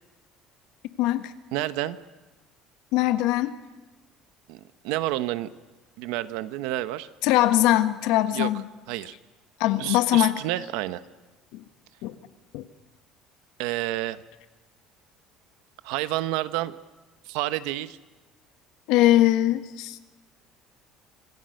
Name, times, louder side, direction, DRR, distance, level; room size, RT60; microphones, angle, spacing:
voice 1, 1.0-1.3 2.9-3.5 7.2-8.6 9.6-10.3 11.5-11.6 12.0-12.1 12.5-12.6 18.9-20.0, left 14 dB, 70° left, 10 dB, 1.4 m, -21 dB
voice 2, 1.5-2.0 4.5-5.5 6.0-7.1 8.3-8.5 8.9-9.1 9.8-11.0 13.6-14.2 15.8-16.8 17.3-18.0, right 15 dB, 85° right, 13 dB, 1.1 m, -29 dB
26.5 x 19.5 x 6.6 m, 1.2 s
cardioid pair, 180°, 0 cm